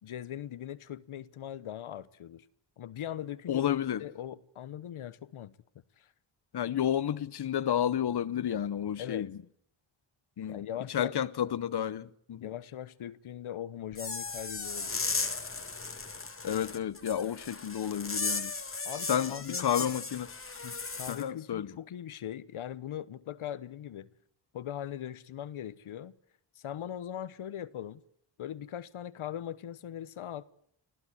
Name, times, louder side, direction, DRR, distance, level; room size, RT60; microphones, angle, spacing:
voice 1, 0.0-2.5 2.8-5.6 6.0-6.1 9.0-9.3 10.5-11.1 12.4-15.1 18.8-19.7 20.9-24.1 24.5-26.1 26.6-28.0 28.4-30.4, left 10 dB, 80° left, 1.0 m, -40 dB
voice 2, 3.5-4.1 6.5-9.4 10.4-12.5 16.4-18.5 19.1-20.3 20.6-20.7 21.1-21.7, left 9 dB, 55° left, 0.9 m, -31 dB
sound 1, 13.9-21.2, left 4 dB, 25° left, 1.9 m, -36 dB
25.0 x 15.0 x 9.8 m
wide cardioid pair, 90°, 48 cm